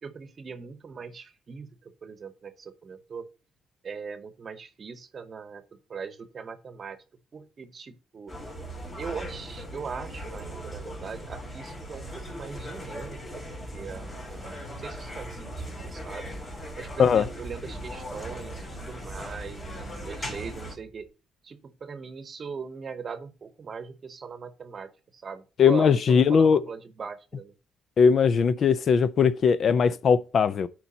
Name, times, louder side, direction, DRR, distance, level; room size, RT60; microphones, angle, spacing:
voice 1, 0.0-3.3 3.8-5.6 5.9-7.0 7.3-8.3 9.0-16.3 16.8-21.1 21.4-27.5, right 5 dB, 45° right, 0.9 m, -40 dB
sound 1, 8.3-20.8, equal, 35° left, 3.6 m, -39 dB
sound 2, 13.4-21.1, right 1 dB, 5° right, 1.8 m, -47 dB
voice 2, 25.6-26.6 28.0-30.7, left 6 dB, 55° left, 0.5 m, -20 dB
12.5 x 4.6 x 2.8 m
cardioid pair, 90°, 0 cm